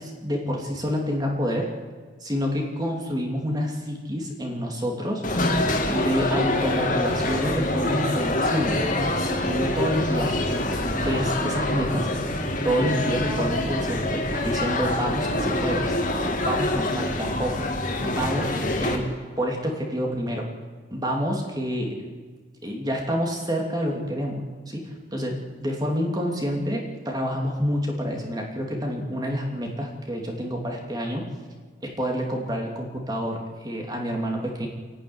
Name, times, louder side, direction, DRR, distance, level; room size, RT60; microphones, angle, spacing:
voice 1, 0.0-1.7 2.2-5.2 5.9-8.9 9.2-10.3 10.9-12.1 12.6-15.9 16.4-17.7 18.0-19.1 19.4-20.5 20.9-22.1 22.6-31.2 31.8-33.4 33.6-34.7, equal, 20° right, 0 dB, 2.9 m, -28 dB
sound 1, 5.2-19.0, left 1 dB, 45° left, 2.6 m, -25 dB
28.5 x 11.0 x 9.8 m, 1.5 s
head